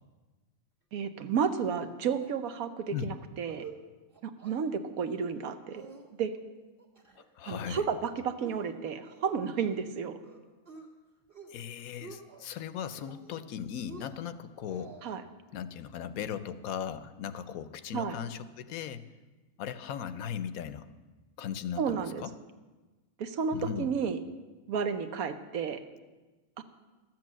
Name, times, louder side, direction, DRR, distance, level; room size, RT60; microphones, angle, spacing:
voice 1, 0.9-3.6 4.2-5.8 6.2-6.3 7.4-10.2 15.0-15.2 17.9-18.2 21.8-22.2 23.2-24.2 24.7-25.8, right 6 dB, 90° right, 9 dB, 1.3 m, -32 dB
sound 1, 1.4-1.9 2.2-2.3 2.7-2.9 3.3-3.8 4.1-4.6 5.0-5.4 5.7-6.4 6.8-7.3 7.6-8.0 8.4-9.9 10.2-10.9 11.2-11.6 11.9-12.5 12.9-13.5 13.8-15.2, right 4 dB, 40° right, 1.8 m, -50 dB
voice 2, 7.2-7.9 11.5-15.1 15.5-19.0 19.6-20.9 21.4-22.3 23.5-23.9, left 8 dB, 85° left, 13 dB, 1.1 m, -38 dB
13.0 x 7.6 x 7.4 m, 1.2 s
omnidirectional pair, 1.5 m